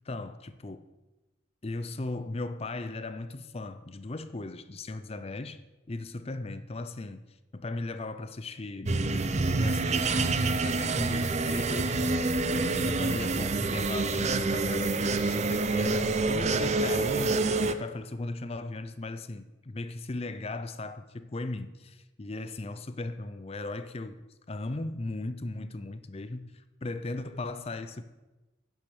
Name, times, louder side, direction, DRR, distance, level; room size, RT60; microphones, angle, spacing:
voice 1, 0.1-0.9 1.6-5.6 5.9-7.3 7.5-12.0 12.5-17.4 17.7-24.1 24.5-28.0, left 2 dB, 30° left, 0.5 m, -37 dB
sound 1, 8.9-17.7, right 3 dB, 35° right, 0.6 m, -27 dB
10.0 x 8.8 x 6.3 m
head